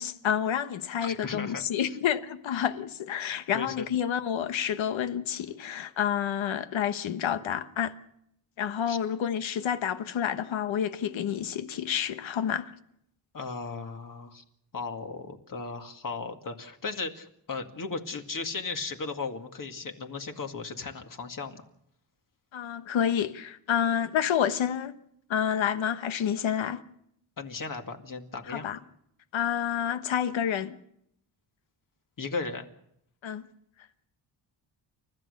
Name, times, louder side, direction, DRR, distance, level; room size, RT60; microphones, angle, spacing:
voice 1, 0.0-7.9 8.6-12.7 22.5-24.9 25.3-26.8 28.5-28.8 29.3-30.8 33.2-33.5, left 9 dB, 75° left, 1.4 m, -29 dB
voice 2, 1.0-2.0 3.5-3.9 8.9-9.0 13.3-14.4 14.7-21.6 27.4-28.7 32.2-32.7, left 4 dB, 45° left, 2.1 m, -36 dB
29.5 x 13.5 x 6.7 m
cardioid pair, 115°, 46 cm